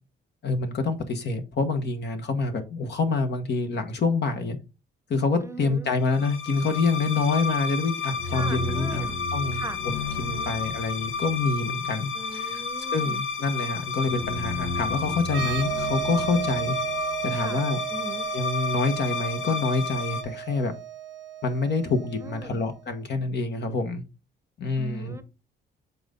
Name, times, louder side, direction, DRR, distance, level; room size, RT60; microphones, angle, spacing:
voice 1, 0.4-4.6 5.1-9.6 10.2-12.6 12.9-16.7 17.2-17.8 18.3-20.7 21.4-24.0 24.6-25.2, left 3 dB, 60° left, 1.4 m, -27 dB
voice 2, 5.4-5.9 8.2-9.2 9.5-9.8 10.2-10.5 12.1-13.2 17.3-17.6 17.9-18.3 22.2-22.6 24.8-25.2, right 1 dB, 15° right, 0.9 m, -39 dB
sound 1, 6.1-20.2, left 5 dB, 85° left, 1.0 m, -31 dB
sound 2, 15.2-22.8, right 12 dB, 70° right, 0.7 m, -34 dB
7.6 x 4.0 x 3.8 m
cardioid pair, 90°, 20 cm